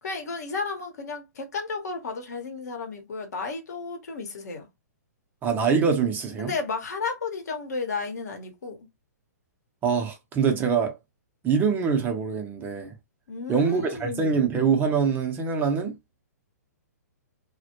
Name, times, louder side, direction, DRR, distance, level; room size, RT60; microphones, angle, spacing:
voice 1, 0.0-4.7 6.4-8.8 13.3-14.5, left 4 dB, 70° left, 0.9 m, -33 dB
voice 2, 5.4-6.5 9.8-10.9 11.4-12.9 13.5-16.0, right 6 dB, 20° right, 0.6 m, -24 dB
2.1 x 2.0 x 2.9 m
hypercardioid pair, 130°, 9 cm